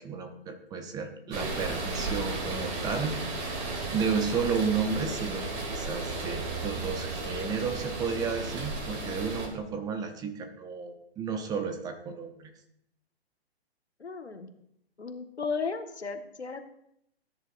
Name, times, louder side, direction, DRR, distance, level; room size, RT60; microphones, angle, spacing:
voice 1, 0.0-3.2 3.6-12.5, right 5 dB, 10° right, 7 dB, 0.7 m, -32 dB
sound 1, 1.3-9.5, right 3 dB, 30° right, 2.9 m, -34 dB
voice 2, 14.0-14.5 15.0-16.6, left 5 dB, 85° left, 6 dB, 1.6 m, -35 dB
18.0 x 10.0 x 2.6 m, 0.75 s
figure-of-eight pair, 130°, 32 cm